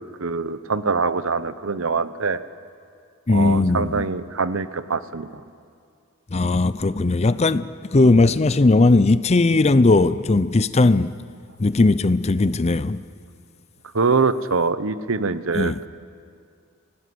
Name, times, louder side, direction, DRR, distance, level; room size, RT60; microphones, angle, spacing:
voice 1, 0.0-2.4 3.3-5.4 13.9-15.9, right 4 dB, 70° right, 0.9 m, -24 dB
voice 2, 3.3-4.0 6.3-11.1 11.6-13.0 15.5-15.8, left 2 dB, 30° left, 0.5 m, -18 dB
25.0 x 18.0 x 7.8 m
head